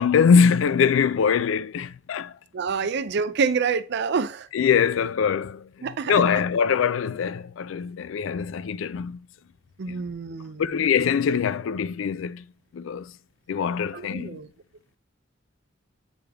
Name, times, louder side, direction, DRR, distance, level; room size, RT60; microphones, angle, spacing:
voice 1, 0.0-2.3 4.5-5.7 6.1-9.2 9.9-10.0 10.6-12.4 12.7-13.1 13.5-14.4, left 6 dB, 70° left, 0.4 m, -23 dB
voice 2, 2.5-4.5 5.8-6.2 9.8-10.7 13.9-14.5, right 5 dB, 60° right, 0.5 m, -27 dB
8.1 x 3.3 x 3.5 m
head